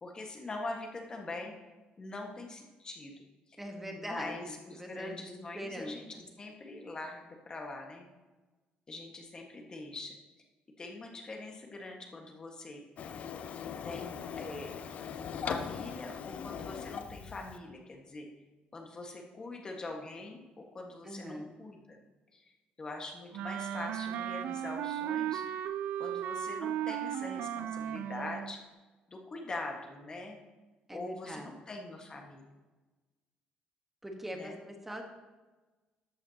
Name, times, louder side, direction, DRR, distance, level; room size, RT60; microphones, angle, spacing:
voice 1, 0.0-1.5 2.0-3.1 3.9-6.1 6.4-8.1 8.9-10.1 10.8-12.8 13.8-14.7 15.4-18.3 18.7-22.0 22.3-22.5 22.8-25.6 26.0-28.6 29.1-30.4 30.9-32.4 34.3-34.6, left 2 dB, 25° left, 1 dB, 1.5 m, -43 dB
voice 2, 3.6-4.3 4.7-6.2 21.0-21.5 30.9-31.5 34.0-35.0, equal, 10° right, 3 dB, 1.3 m, -42 dB
Printer, 13.0-17.6, left 7 dB, 50° left, 0.6 m, -40 dB
Wind instrument woodwind instrument, 23.3-28.6, right 10 dB, 75° right, 0.4 m, -36 dB
13.5 x 8.6 x 2.9 m, 1.2 s
cardioid pair, 130°, 3 cm